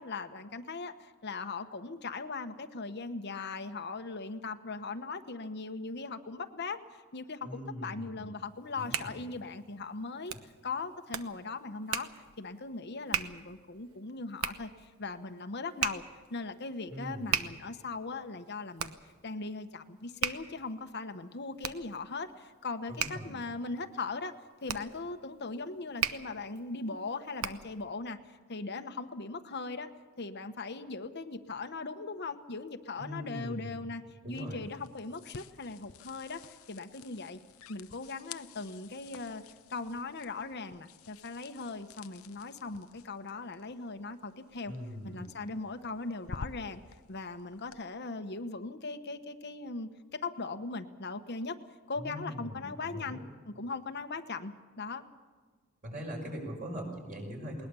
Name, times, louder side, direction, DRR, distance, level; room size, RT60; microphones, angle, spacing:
voice 1, 0.0-12.1 12.4-16.0 16.3-24.3 24.6-29.9 30.2-37.4 37.7-39.4 39.7-44.7 45.0-46.8 47.1-51.6 51.9-53.2 53.5-55.1, left 3 dB, 50° left, 7 dB, 1.0 m, -39 dB
voice 2, 7.4-8.3 8.8-9.2 16.9-17.4 22.9-23.4 33.0-33.8 34.2-34.6 44.7-45.3 52.0-53.2 55.8-57.7, equal, 40° right, 1 dB, 5.6 m, -41 dB
Hands, 8.5-27.8, right 8 dB, 85° right, 1.0 m, -39 dB
sound 1, 34.3-47.8, left 5 dB, 85° left, 0.8 m, -51 dB
20.5 x 20.0 x 6.9 m, 1.5 s
head